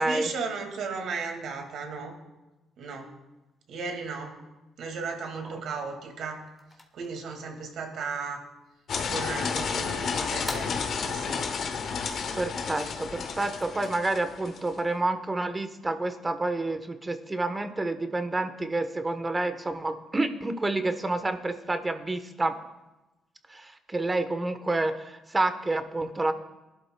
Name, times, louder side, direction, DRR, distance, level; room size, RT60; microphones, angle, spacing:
voice 1, 0.0-2.1 2.8-3.1 3.7-4.4 4.8-6.4 6.9-8.4 9.1-11.5, right 4 dB, 75° right, 3 dB, 2.2 m, -35 dB
Cassette Tape Button, 6.1-15.9, left 1 dB, 15° left, 1.6 m, -49 dB
sound 1, 8.9-14.7, left 5 dB, 60° left, 1.2 m, -31 dB
voice 2, 12.4-22.5 23.5-26.3, right 2 dB, 20° right, 8 dB, 1.1 m, -29 dB
20.5 x 12.0 x 2.3 m, 1.0 s
cardioid pair, 90°, 0 cm